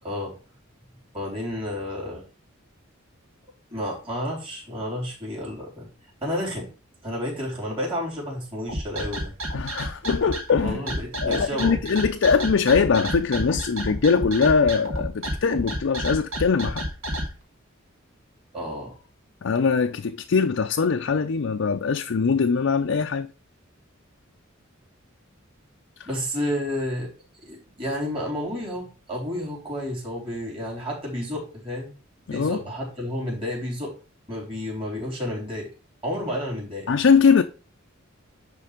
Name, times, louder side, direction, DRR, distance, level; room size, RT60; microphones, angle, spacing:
voice 1, 0.0-0.3 1.1-2.2 3.7-5.9 6.2-6.7 7.0-9.3 10.6-11.8 18.5-19.0 26.1-27.1 27.4-31.9 32.3-33.9 34.3-35.7 36.0-36.9, left 1 dB, 30° right, 3.8 m, -31 dB
sound 1, 8.7-17.3, equal, 80° right, 1.9 m, -30 dB
voice 2, 9.5-10.8 11.2-16.9 19.4-23.3 32.3-32.6 36.9-37.4, left 5 dB, 65° left, 0.5 m, -22 dB
10.0 x 3.4 x 5.0 m
head